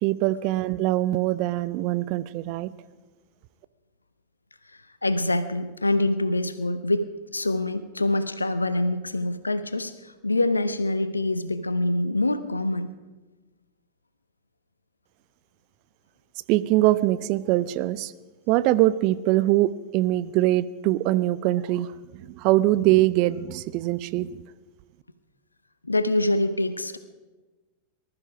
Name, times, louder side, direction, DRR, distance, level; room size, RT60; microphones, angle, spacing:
voice 1, 0.0-2.7 16.5-18.1 18.5-24.4, right 16 dB, 45° right, 16 dB, 0.5 m, -23 dB
voice 2, 5.0-7.1 7.3-9.9 10.2-12.9 25.8-27.0, left 2 dB, 80° left, 13 dB, 0.8 m, -25 dB
20.0 x 12.5 x 4.9 m, 1.2 s
figure-of-eight pair, 90°, 0 cm